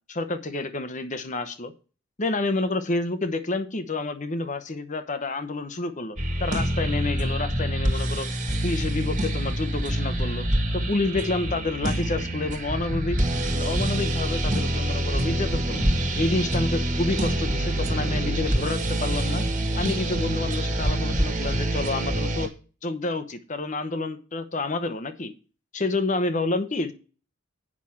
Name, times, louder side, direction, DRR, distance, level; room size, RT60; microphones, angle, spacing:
voice 1, 0.1-1.7 2.2-8.3 8.6-10.5 10.7-13.2 13.5-15.9 16.2-19.4 19.8-22.5 22.8-25.3 25.7-26.9, left 2 dB, 35° left, 11 dB, 0.9 m, -29 dB
sound 1, 6.2-22.5, right 1 dB, 35° right, 1.8 m, -26 dB
8.6 x 6.1 x 5.7 m, 0.36 s
head